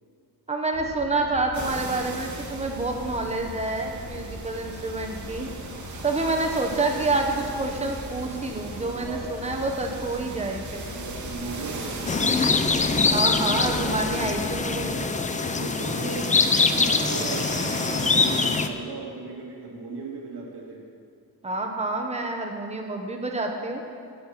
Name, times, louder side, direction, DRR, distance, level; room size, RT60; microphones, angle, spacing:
voice 1, 0.5-5.5 6.0-10.9 13.1-15.0 21.4-23.8, right 2 dB, 15° right, 3 dB, 1.0 m, -28 dB
sound 1, 0.7-14.8, left 2 dB, 65° left, 2.7 m, -41 dB
sound 2, 1.5-18.6, right 3 dB, 45° right, 1.4 m, -39 dB
voice 2, 8.8-9.3 10.7-12.7 15.2-16.4 16.7-20.8, right 3 dB, 80° right, -2 dB, 2.1 m, -37 dB
sound 3, 12.1-18.7, left 4 dB, 20° left, 0.4 m, -23 dB
17.0 x 5.8 x 5.8 m, 2.4 s
wide cardioid pair, 165°, 39 cm